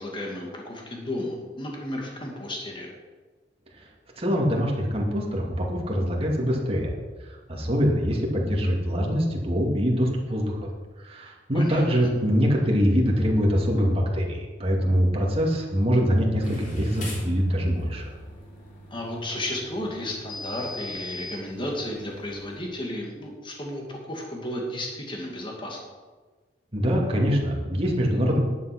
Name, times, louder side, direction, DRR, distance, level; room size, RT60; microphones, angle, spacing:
voice 1, 0.0-2.9 11.5-11.8 18.9-25.8, left 1 dB, 30° left, 0 dB, 2.2 m, -33 dB
voice 2, 4.2-6.9 7.2-10.7 11.0-18.0 26.7-28.4, equal, 35° right, -1 dB, 2.3 m, -24 dB
sound 1, 16.4-22.6, left 1 dB, 45° left, 3.1 m, -40 dB
11.0 x 8.6 x 6.0 m, 1.4 s
head